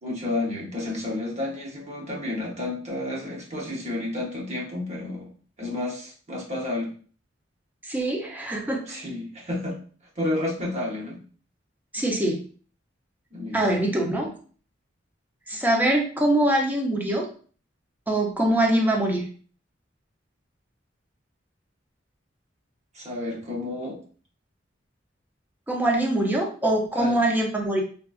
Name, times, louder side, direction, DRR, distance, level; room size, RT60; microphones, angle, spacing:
voice 1, 0.0-5.3 5.6-6.9 8.9-9.8 10.2-11.2 13.3-13.7 22.9-24.0 26.9-27.2, left 2 dB, 35° right, -2 dB, 0.9 m, -31 dB
voice 2, 7.9-9.0 11.9-12.4 13.5-14.3 15.5-17.3 18.1-19.3 25.7-27.8, right 1 dB, 10° right, -1 dB, 0.5 m, -23 dB
3.6 x 2.1 x 2.4 m, 0.42 s
head